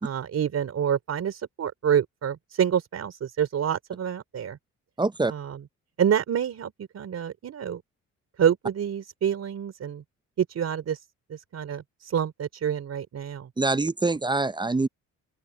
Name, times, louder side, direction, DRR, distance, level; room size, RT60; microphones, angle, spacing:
voice 1, 0.0-4.6 5.3-5.6 6.0-7.8 8.4-10.0 10.4-11.0 11.3-13.5, right 8 dB, 55° right, 3.8 m, -27 dB
voice 2, 5.0-5.3 13.6-14.9, right 3 dB, 15° right, 0.5 m, -24 dB
open air
cardioid pair, 90°, 30 cm